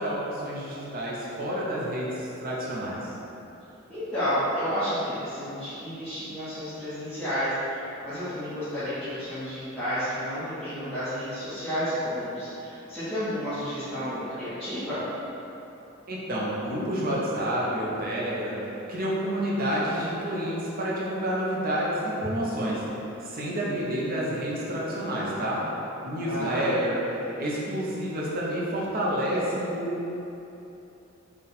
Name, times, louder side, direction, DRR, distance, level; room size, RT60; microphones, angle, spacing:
voice 1, 0.0-2.1 2.4-3.0 16.1-18.6 18.9-22.8 23.2-25.6 26.0-27.0 27.4-30.1, equal, 45° right, -6 dB, 0.7 m, -29 dB
voice 2, 3.9-7.5 8.0-15.1 26.2-26.6, equal, ahead, -19 dB, 1.1 m, -31 dB
4.0 x 2.4 x 4.1 m, 3.0 s
head